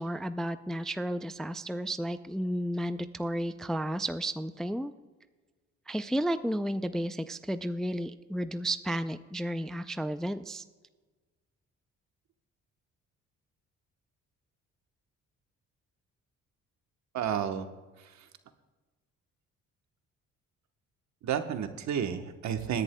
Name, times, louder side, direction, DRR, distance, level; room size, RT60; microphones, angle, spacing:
voice 1, 0.0-4.9 5.9-10.6, right 1 dB, ahead, 11 dB, 0.3 m, -32 dB
voice 2, 17.1-17.7 21.2-22.8, right 8 dB, 65° right, 8 dB, 1.1 m, -31 dB
21.0 x 10.5 x 2.2 m, 1.3 s
cardioid pair, 90°, 30 cm